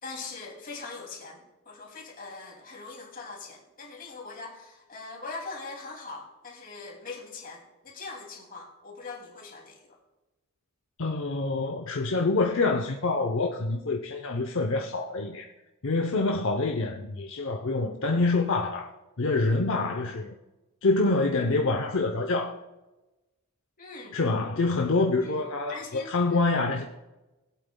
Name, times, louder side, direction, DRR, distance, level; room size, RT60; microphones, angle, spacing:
voice 1, 0.0-10.0 23.8-24.2 25.2-25.4 25.7-26.4, left 3 dB, 45° left, 0 dB, 2.6 m, -42 dB
voice 2, 11.0-15.5 15.8-18.9 19.2-20.3 20.8-22.5 24.1-26.8, left 3 dB, 65° left, 3 dB, 0.7 m, -26 dB
20.5 x 8.4 x 2.3 m, 1.1 s
head